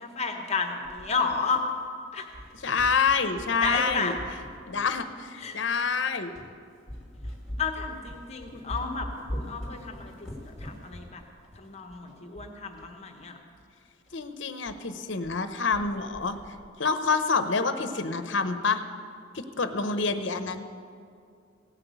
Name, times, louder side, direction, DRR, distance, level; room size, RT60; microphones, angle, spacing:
voice 1, 0.0-1.6 2.1-2.3 3.6-4.1 5.4-5.6 7.6-11.2 11.5-13.4, left 4 dB, 30° left, 3 dB, 1.0 m, -32 dB
sound 1, 0.8-2.0 2.3-5.3 5.8-5.9 6.3-6.5 6.9-12.9 13.2-13.3 13.5-13.6 14.1-14.2 14.6-14.8 15.0-15.4 15.7-16.7, equal, ahead, 2.1 m, -42 dB
voice 2, 2.6-4.1 4.7-6.3 14.1-16.4 16.8-18.8 19.3-20.6, left 4 dB, 60° left, 9 dB, 0.8 m, -27 dB
17.0 x 5.9 x 8.1 m, 2.3 s
head